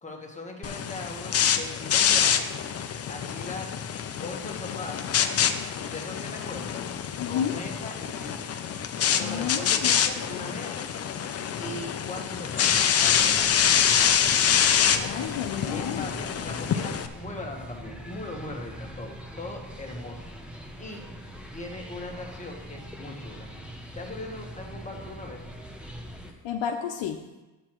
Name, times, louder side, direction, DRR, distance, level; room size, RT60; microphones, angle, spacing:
voice 1, 0.0-2.5 3.1-3.7 4.2-5.1 5.9-6.9 7.3-8.6 9.1-10.9 11.6-13.7 15.7-20.3 20.8-21.0 21.5-23.5 23.9-25.4, left 2 dB, 15° left, 1 dB, 1.2 m, -40 dB
sound 1, 0.6-17.1, left 8 dB, 35° left, 0.5 m, -26 dB
voice 2, 7.2-7.6 9.2-9.9 14.9-16.1 26.4-27.2, left 8 dB, 70° left, 2 dB, 0.9 m, -31 dB
sound 2, 12.5-26.3, equal, ahead, 0.8 m, -42 dB
12.0 x 8.7 x 3.1 m, 1.1 s
cardioid pair, 155°, 47 cm